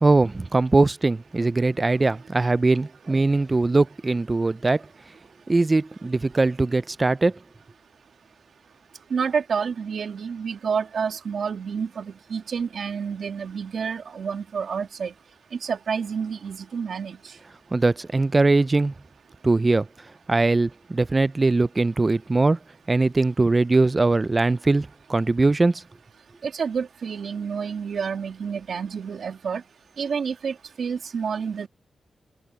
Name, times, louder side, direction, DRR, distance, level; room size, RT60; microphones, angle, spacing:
voice 1, 0.0-4.8 5.5-7.4 17.7-18.9 19.4-19.9 20.3-22.6 22.9-25.8, right 3 dB, 25° right, 0.4 m, -21 dB
voice 2, 9.1-15.1 15.6-17.2 26.4-29.6 30.0-31.7, right 6 dB, 65° right, 1.8 m, -29 dB
open air
wide cardioid pair, 115°, 0 cm